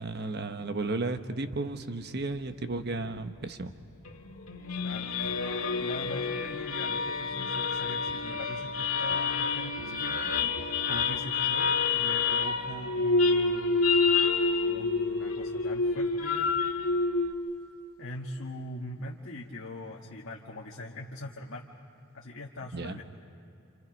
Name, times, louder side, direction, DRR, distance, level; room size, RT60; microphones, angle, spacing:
voice 1, 0.0-3.7 22.7-23.0, right 2 dB, 50° right, 8 dB, 1.1 m, -33 dB
sound 1, 4.1-17.3, left 4 dB, 80° left, 1.8 m, -28 dB
voice 2, 4.8-14.0 14.7-16.6 18.0-21.7 22.1-23.0, left 1 dB, 60° left, -3 dB, 1.7 m, -42 dB
30.0 x 28.0 x 5.3 m, 2.7 s
head